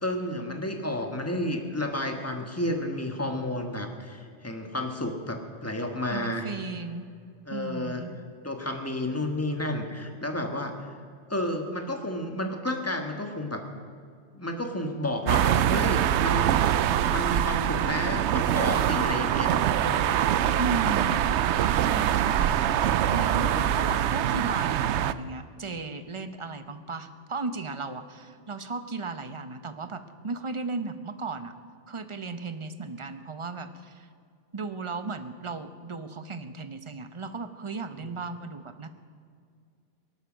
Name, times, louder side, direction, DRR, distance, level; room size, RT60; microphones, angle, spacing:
voice 1, 0.0-6.5 7.5-8.0 8.4-10.9 11.3-13.6 14.3-16.6 17.0-20.0 23.5-23.8 37.9-38.1, left 1 dB, 10° left, 4 dB, 1.5 m, -31 dB
voice 2, 6.1-7.1 7.5-8.1 20.6-21.2 21.8-31.5 31.9-34.1 34.5-38.9, right 4 dB, 30° right, 10 dB, 0.8 m, -35 dB
sound 1, 15.3-25.1, right 10 dB, 70° right, 0.8 m, -24 dB
19.0 x 11.5 x 6.3 m, 2.2 s
omnidirectional pair, 1.2 m